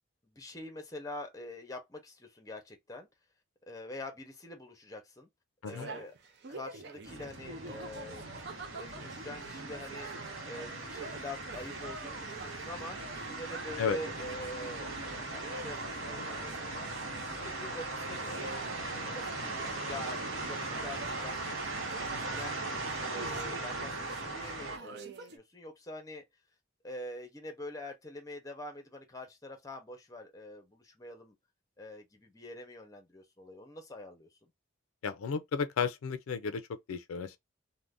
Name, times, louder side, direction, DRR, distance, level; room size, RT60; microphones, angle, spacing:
voice 1, 0.2-3.1 3.7-5.3 5.6-6.1 6.5-10.1 10.5-13.0 13.3-14.9 15.2-16.6 17.3-18.5 18.9-21.7 22.1-26.2 26.8-31.3 31.8-34.5, left 1 dB, 15° left, 0.6 m, -45 dB
sound 1, 5.7-25.4, right 3 dB, 50° right, 0.5 m, -47 dB
sound 2, 7.0-24.8, right 2 dB, 75° right, 1.0 m, -39 dB
voice 2, 35.0-37.4, left 6 dB, 90° left, 0.4 m, -33 dB
2.5 x 2.1 x 3.3 m
head